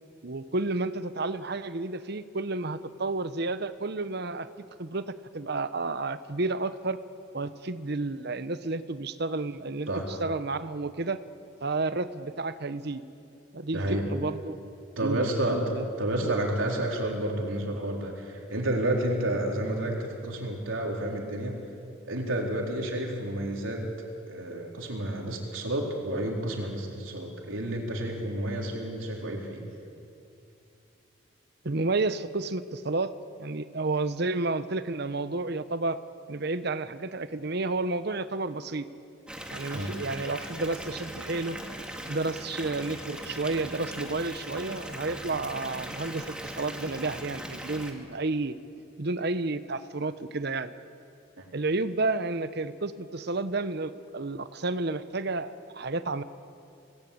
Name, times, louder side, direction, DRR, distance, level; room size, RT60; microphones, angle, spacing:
voice 1, 0.2-4.5 4.8-5.0 5.3-7.0 7.3-9.9 10.2-11.2 11.6-13.0 13.5-14.6 15.0-15.8 16.2-16.3 31.6-33.1 33.4-36.0 36.3-38.9 39.5-41.6 42.1-48.6 49.0-50.7 51.5-56.2, right 3 dB, 55° right, 12 dB, 0.9 m, -31 dB
voice 2, 13.7-14.0 15.0-21.6 22.1-23.8 24.3-29.6 39.7-40.0 51.4-51.5, right 1 dB, 80° right, 0 dB, 4.2 m, -30 dB
Water tap faucet / Bathtub (filling or washing) / Fill (with liquid), 39.3-47.9, right 1 dB, 5° right, 2.1 m, -39 dB
26.5 x 19.5 x 8.7 m, 2.7 s
head